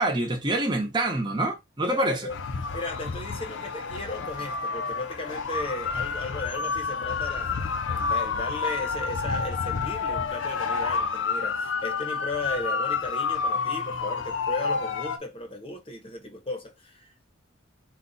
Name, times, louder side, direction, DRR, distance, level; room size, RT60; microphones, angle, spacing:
voice 1, 0.0-2.3, right 1 dB, 25° right, 1.0 m, -26 dB
voice 2, 1.9-2.3 2.7-17.1, left 2 dB, 30° left, 0.9 m, -36 dB
sound 1, 2.3-15.2, left 5 dB, 80° left, 0.6 m, -29 dB
4.1 x 2.4 x 4.0 m
head